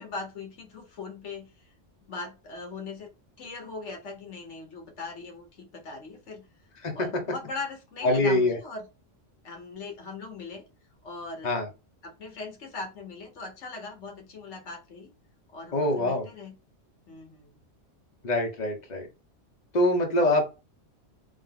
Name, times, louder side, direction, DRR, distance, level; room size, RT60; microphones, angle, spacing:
voice 1, 0.0-1.7 2.1-3.1 3.4-6.4 6.9-8.8 9.4-10.6 11.0-11.7 12.0-15.1 15.5-16.5 17.1-17.6, left 3 dB, 70° left, 3 dB, 1.5 m, -40 dB
voice 2, 8.0-8.6 11.4-11.7 15.7-16.3 18.2-19.1 19.7-20.4, left 1 dB, 35° left, 3 dB, 1.1 m, -24 dB
3.5 x 2.8 x 3.7 m, 0.29 s
omnidirectional pair, 1.3 m